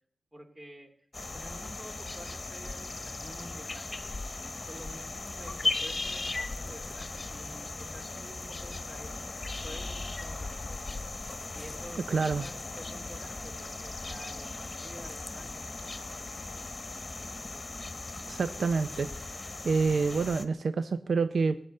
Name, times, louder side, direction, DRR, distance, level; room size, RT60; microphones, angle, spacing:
voice 1, 0.3-0.9 1.3-4.2 4.7-9.2 9.6-10.8 11.5-15.8 16.1-16.2, right 1 dB, 30° right, 5 dB, 2.6 m, -49 dB
sound 1, 1.1-20.5, left 3 dB, 40° left, 1.1 m, -38 dB
voice 2, 12.1-12.4 18.3-21.6, right 4 dB, 80° right, 13 dB, 0.5 m, -28 dB
14.0 x 8.7 x 7.7 m, 0.68 s
cardioid pair, 55°, 0 cm